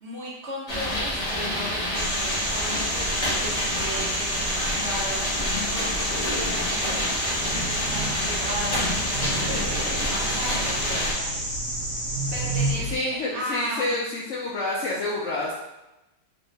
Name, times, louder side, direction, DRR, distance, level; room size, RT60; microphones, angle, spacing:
voice 1, 0.0-5.4 5.6-7.0 7.3-11.4 12.3-14.0, right 1 dB, 50° right, -4 dB, 0.9 m, -36 dB
sound 1, 0.7-11.1, left 1 dB, 35° left, 0.6 m, -28 dB
sound 2, 1.9-12.7, equal, 15° right, 0.7 m, -31 dB
sound 3, 7.4-13.0, right 3 dB, 90° right, 1.2 m, -33 dB
voice 2, 12.8-15.5, left 2 dB, 85° left, -4 dB, 0.6 m, -28 dB
3.1 x 2.6 x 3.2 m, 0.97 s
omnidirectional pair, 1.8 m